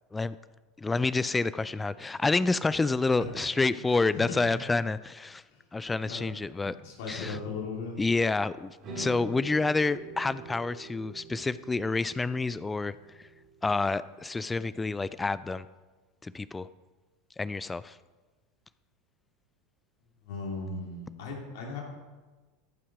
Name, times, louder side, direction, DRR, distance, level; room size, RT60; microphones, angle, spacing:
voice 1, 0.8-5.4 5.7-6.7 7.1-7.4 8.0-13.3 13.6-15.6 16.2-16.7 17.4-18.0, left 3 dB, 15° left, 0.3 m, -28 dB
voice 2, 3.9-4.5 5.5-5.6 6.1-6.3 6.8-7.9 20.2-21.8, left 3 dB, 65° left, 2.8 m, -37 dB
sound 1, 8.8-15.1, right 4 dB, 40° right, 3.2 m, -46 dB
14.0 x 5.7 x 4.8 m
hypercardioid pair, 85°, 0 cm